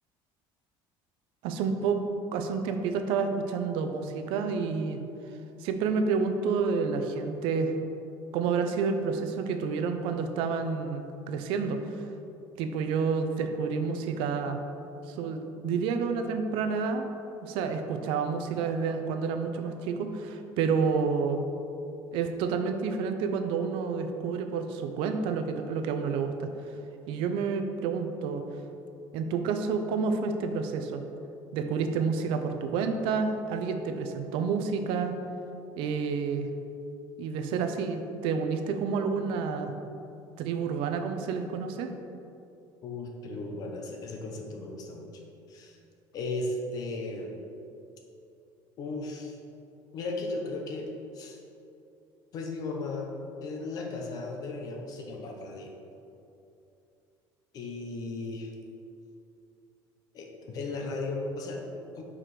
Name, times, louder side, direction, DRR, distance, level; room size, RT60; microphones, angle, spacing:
voice 1, 1.4-2.0 2.3-5.0 5.6-7.7 8.3-12.1 12.6-14.6 15.1-17.1 17.4-21.4 22.1-26.5 27.1-28.4 29.1-31.0 31.5-35.1 35.8-36.5 37.2-39.7 40.4-41.9, right 5 dB, 70° right, 7 dB, 0.6 m, -29 dB
voice 2, 42.8-45.1 45.5-45.8 46.1-47.4 48.8-49.4 49.9-50.9 51.1-51.4 52.3-53.1 53.4-55.7 57.5-58.5 60.1-62.0, left 2 dB, 40° left, 1 dB, 0.9 m, -36 dB
5.9 x 4.9 x 4.8 m, 2.7 s
cardioid pair, 165°, 9 cm